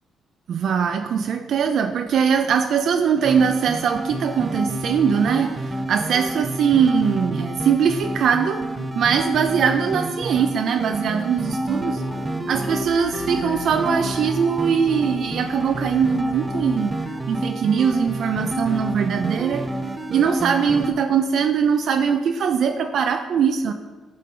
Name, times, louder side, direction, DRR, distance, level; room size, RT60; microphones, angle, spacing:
voice 1, 0.5-12.0 12.5-17.0 17.3-19.7 20.1-23.7, right 7 dB, 65° right, 7 dB, 0.4 m, -21 dB
sound 1, 3.2-20.9, right 1 dB, 20° right, 0.8 m, -29 dB
sound 2, 11.5-20.8 21.1-21.3, left 2 dB, 50° left, 1.3 m, -41 dB
10.0 x 3.8 x 4.3 m, 1.3 s
cardioid pair, 90°, 0 cm